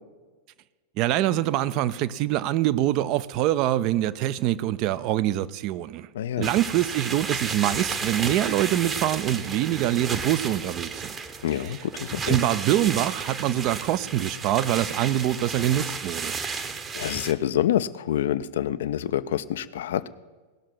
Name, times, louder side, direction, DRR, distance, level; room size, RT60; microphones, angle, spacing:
voice 1, 1.0-6.1 6.4-11.2 11.5-11.8 12.3-16.3, right 13 dB, 40° right, 15 dB, 0.4 m, -24 dB
voice 2, 6.1-6.5 11.4-12.4 16.9-20.0, left 11 dB, 60° left, 14 dB, 0.4 m, -27 dB
sound 1, 6.4-17.3, right 5 dB, 20° right, 0.9 m, -33 dB
18.5 x 6.5 x 6.0 m, 1.3 s
figure-of-eight pair, 90°, 0 cm